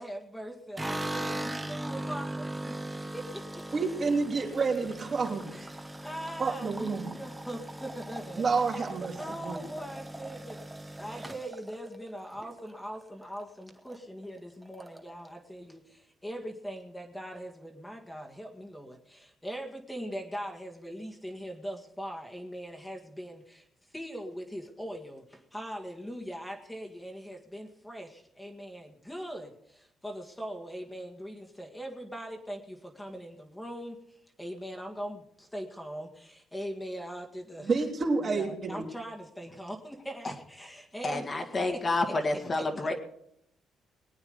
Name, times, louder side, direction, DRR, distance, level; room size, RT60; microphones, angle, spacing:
voice 1, 0.0-3.6 5.5-5.7 6.0-8.5 9.2-10.6 11.0-23.7 23.9-37.7 38.2-41.3 41.7-41.8 42.1-42.9, equal, 10° left, 2 dB, 1.9 m, -41 dB
sound 1, 0.8-13.0 13.4-14.0 14.2-14.3 14.6-15.3, right 1 dB, 15° right, 1.6 m, -39 dB
voice 2, 3.7-5.5 6.4-7.1 8.4-9.2 9.4-9.6 37.6-38.9, right 4 dB, 45° right, 0 dB, 3.3 m, -29 dB
voice 3, 41.0-42.9, left 2 dB, 35° left, 4 dB, 2.0 m, -29 dB
21.5 x 8.9 x 5.2 m, 0.75 s
cardioid pair, 90°, 0 cm